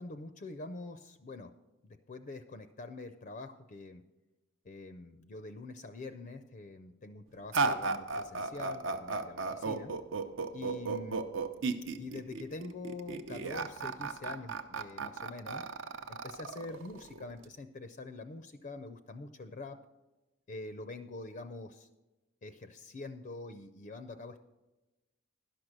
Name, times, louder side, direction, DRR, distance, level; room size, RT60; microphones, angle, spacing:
voice 1, 0.0-1.5 1.8-4.0 4.6-9.9 10.5-11.2 12.0-15.6 16.1-19.8 20.5-21.9 22.4-24.4, left 3 dB, 40° left, 10 dB, 0.4 m, -45 dB
sound 1, 7.5-17.5, right 4 dB, 65° right, 0.6 m, -35 dB
11.5 x 6.0 x 6.4 m, 1.1 s
head